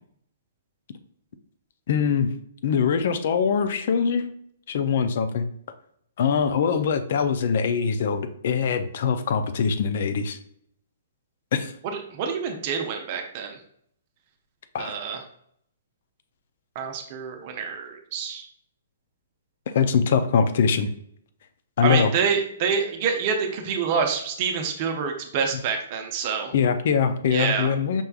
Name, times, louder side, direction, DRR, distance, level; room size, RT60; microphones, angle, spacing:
voice 1, 1.9-2.3 2.6-4.3 4.7-5.5 6.2-10.4 11.5-11.7 14.7-14.9 19.7-20.9 21.8-22.1 26.5-28.0, left 6 dB, 55° left, 10 dB, 0.5 m, -23 dB
voice 2, 11.9-13.6 14.8-15.2 16.8-18.4 21.8-26.5 27.3-27.7, right 6 dB, 40° right, 4 dB, 0.6 m, -27 dB
5.2 x 3.3 x 2.3 m, 0.68 s
figure-of-eight pair, 120°, 0 cm